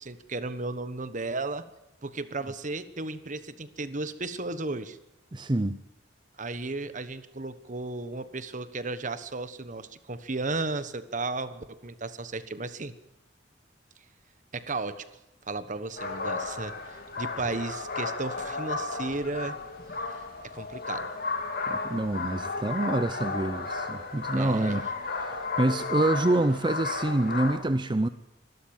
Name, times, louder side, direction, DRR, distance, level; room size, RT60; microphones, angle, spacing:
voice 1, 0.0-1.7 2.0-5.0 6.4-12.9 14.5-15.0 15.5-19.6 20.4-21.1 24.3-24.8, right 3 dB, 45° right, 1.3 m, -34 dB
voice 2, 5.3-5.8 21.7-24.8 25.2-28.1, right 2 dB, 25° right, 0.7 m, -26 dB
sound 1, 16.0-27.6, left 3 dB, 55° left, 3.3 m, -33 dB
25.0 x 13.0 x 8.9 m
head